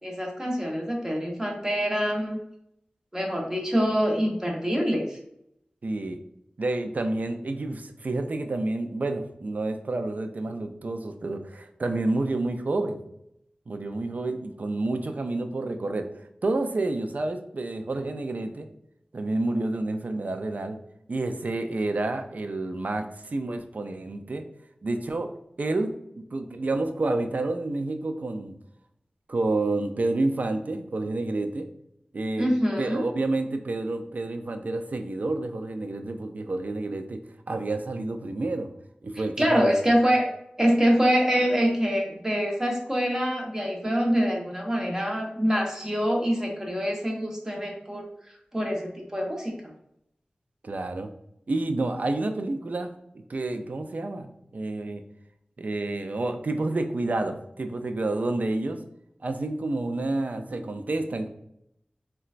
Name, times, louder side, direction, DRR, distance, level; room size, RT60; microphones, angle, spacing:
voice 1, 0.0-2.4 3.1-5.2 32.4-33.0 39.4-40.3 40.6-48.1 48.5-49.7, equal, 20° right, -1 dB, 0.9 m, -25 dB
voice 2, 5.8-6.2 6.6-13.0 13.7-18.7 19.1-20.8 21.1-24.4 24.8-25.3 25.6-25.9 26.3-28.5 29.3-31.7 32.1-32.5 32.8-37.2 37.5-38.7 39.0-39.8 50.6-51.1 51.5-55.0 55.6-58.8 59.2-61.3, right 2 dB, 60° right, 7 dB, 0.4 m, -29 dB
3.8 x 2.2 x 2.4 m, 0.77 s
cardioid pair, 40°, 3 cm